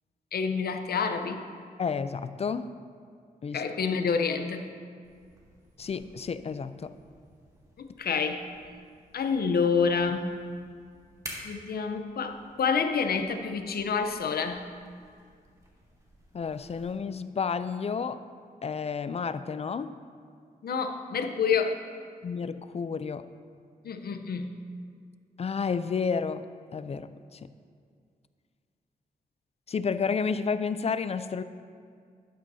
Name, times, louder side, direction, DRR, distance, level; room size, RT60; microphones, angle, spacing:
voice 1, 0.3-1.4 3.5-4.7 7.8-8.4 9.1-10.3 11.4-14.7 20.6-21.8 23.8-24.5, left 5 dB, 75° left, 7 dB, 0.7 m, -28 dB
voice 2, 1.8-2.7 3.4-3.6 5.8-7.0 16.3-18.2 18.6-20.0 22.2-23.3 25.4-26.4 26.7-27.5 29.7-31.4, left 5 dB, 40° left, 12 dB, 0.4 m, -31 dB
sound 1, 5.0-16.9, equal, 20° right, 2.0 m, -51 dB
11.5 x 11.0 x 2.7 m, 2.2 s
cardioid pair, 95°, 16 cm